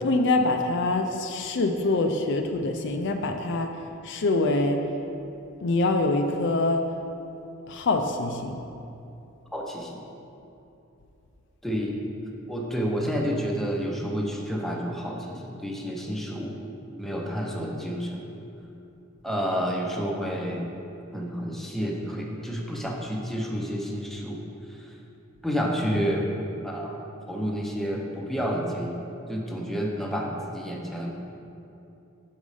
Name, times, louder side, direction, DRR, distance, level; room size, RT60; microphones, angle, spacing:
voice 1, 0.0-3.7 4.0-4.8 5.6-6.9 7.7-8.5 25.9-26.1, left 2 dB, 60° left, 5 dB, 0.5 m, -25 dB
voice 2, 9.5-10.0 11.6-11.9 12.5-16.6 17.0-18.2 19.2-20.7 21.1-24.9 25.4-26.3 26.6-27.0 27.3-29.0 29.3-31.2, equal, ahead, -1 dB, 0.7 m, -30 dB
6.3 x 5.4 x 4.8 m, 2.8 s
head